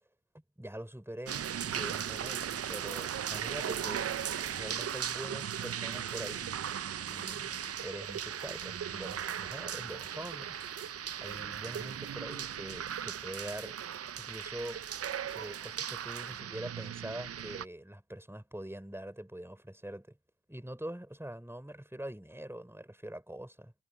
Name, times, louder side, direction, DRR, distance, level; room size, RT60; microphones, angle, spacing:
voice 1, 0.6-4.1 4.5-6.6 7.1-7.5 7.8-10.6 11.2-13.8 14.2-14.8 15.3-20.2 20.5-23.7, right 1 dB, 5° right, 4.1 m, -44 dB
sound 1, 1.3-17.6, right 9 dB, 30° right, 0.5 m, -37 dB
sound 2, 3.0-11.0, left 12 dB, 80° left, 7.2 m, -62 dB
supercardioid pair, 45°, 47 cm